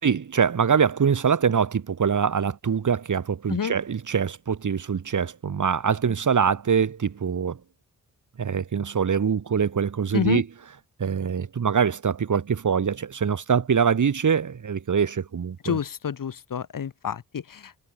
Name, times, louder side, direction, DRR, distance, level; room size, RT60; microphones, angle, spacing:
voice 1, 0.0-7.6 8.4-10.4 11.0-15.8, right 6 dB, 65° right, 4.9 m, -24 dB
voice 2, 15.6-17.9, left 7 dB, 80° left, 5.5 m, -29 dB
wide cardioid pair, 110°, 32 cm